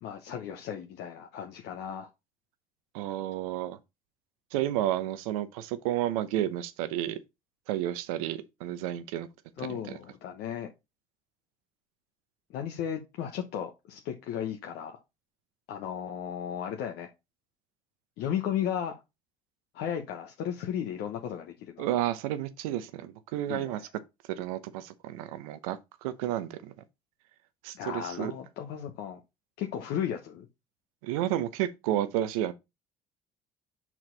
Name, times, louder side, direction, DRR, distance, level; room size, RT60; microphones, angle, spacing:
voice 1, 0.0-2.1 9.6-10.7 12.5-15.0 15.7-17.1 18.2-19.0 19.7-22.0 23.5-23.9 27.7-29.2 29.6-30.5, left 9 dB, 70° left, 1.0 m, -35 dB
voice 2, 2.9-3.8 4.5-7.2 7.7-9.3 9.6-9.8 21.8-23.8 24.4-25.8 26.0-26.7 27.6-28.3 31.0-32.5, right 12 dB, 80° right, 0.7 m, -31 dB
5.9 x 4.6 x 3.9 m
hypercardioid pair, 60°, 18 cm